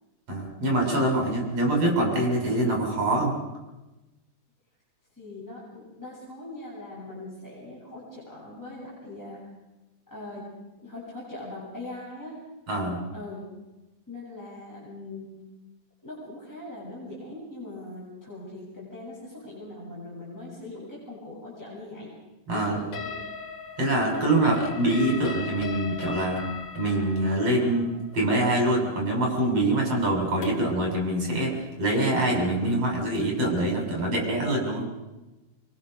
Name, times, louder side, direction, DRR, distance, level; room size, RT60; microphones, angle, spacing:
voice 1, 0.3-3.4 12.7-13.0 22.5-22.8 23.8-26.5 26.8-27.9 28.1-34.9, right 1 dB, 45° right, 1 dB, 7.7 m, -24 dB
voice 2, 5.2-9.5 10.1-10.5 10.8-12.4 13.1-13.5 14.1-15.3 16.0-22.1 22.5-23.1, left 2 dB, 5° left, -6 dB, 7.7 m, -41 dB
sound 1, 22.9-30.8, left 4 dB, 50° left, 2.6 m, -39 dB
25.5 x 23.5 x 6.7 m, 1.1 s
omnidirectional pair, 3.8 m